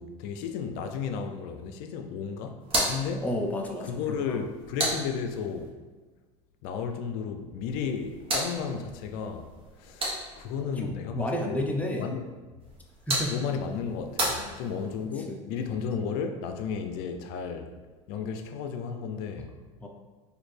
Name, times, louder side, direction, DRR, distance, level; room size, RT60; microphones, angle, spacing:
voice 1, 0.0-2.6 2.8-3.3 3.8-5.7 6.6-9.5 9.8-11.6 12.0-12.2 13.3-17.7 18.1-19.5, left 6 dB, 65° left, 6 dB, 0.4 m, -33 dB
sound 1, 2.6-5.7 7.7-10.6 12.6-15.1, right 1 dB, 30° right, 1.2 m, -34 dB
voice 2, 3.2-3.9 4.2-4.4 10.8-12.1 13.1-13.4 14.2-14.6 15.3-15.4 19.8-19.9, left 1 dB, 10° left, 0 dB, 0.6 m, -31 dB
4.1 x 2.6 x 3.3 m, 1.3 s
supercardioid pair, 95°, 17 cm